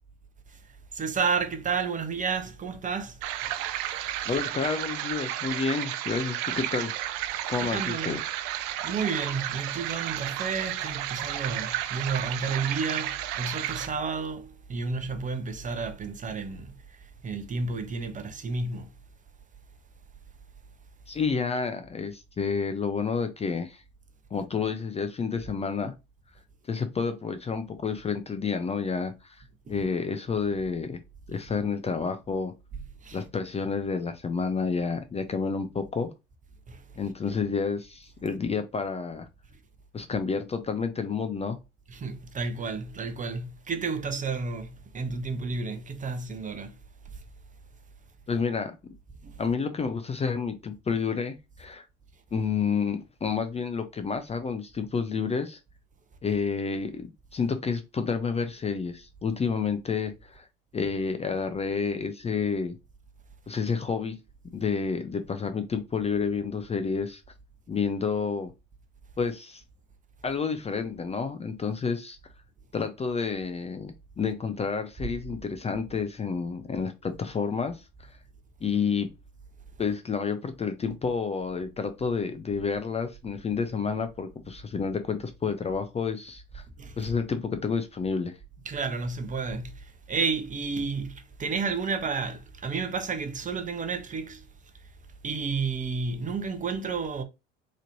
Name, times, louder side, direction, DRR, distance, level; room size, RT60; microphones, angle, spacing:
voice 1, 0.9-3.2 4.3-4.4 7.6-8.2 8.8-18.9 29.7-29.9 33.0-33.2 36.7-36.8 41.9-46.7 49.2-49.4 75.0-75.1 86.8-87.1 88.6-94.5 95.2-97.2, right 4 dB, 25° right, 0.8 m, -31 dB
sound 1, 3.2-13.9, right 12 dB, 70° right, 0.5 m, -32 dB
voice 2, 4.3-6.9 7.5-8.2 21.1-23.8 24.3-25.9 26.7-29.4 29.7-31.0 31.3-32.5 33.1-36.1 37.0-39.3 39.9-41.6 48.3-48.7 49.4-51.9 52.3-55.6 56.2-60.5 60.7-62.8 63.5-64.2 64.5-67.2 67.7-68.5 69.2-69.6 70.2-72.2 72.7-78.1 78.6-79.1 79.8-86.6 87.0-88.4, left 5 dB, 20° left, 0.5 m, -30 dB
4.1 x 3.1 x 2.6 m
hypercardioid pair, 75°, 29 cm